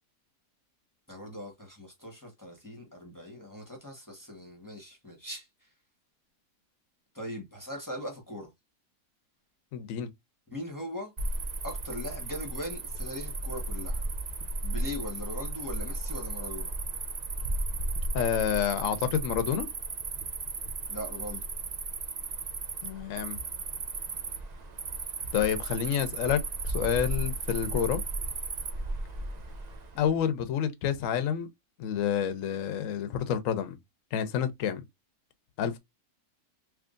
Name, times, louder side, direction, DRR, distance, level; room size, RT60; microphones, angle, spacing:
voice 1, 1.1-5.5 7.1-8.5 10.5-11.1 11.6-14.0 14.6-16.7 20.9-21.4, left 1 dB, 15° left, 1.0 m, -40 dB
voice 2, 9.7-10.1 18.1-19.7 22.8-23.4 25.3-28.0 30.0-31.5 31.8-33.8 34.1-34.8 35.6-35.8, left 8 dB, 65° left, 1.0 m, -29 dB
Cricket, 11.2-30.1, right 2 dB, 85° right, 0.3 m, -35 dB
3.5 x 3.1 x 2.4 m
omnidirectional pair, 1.6 m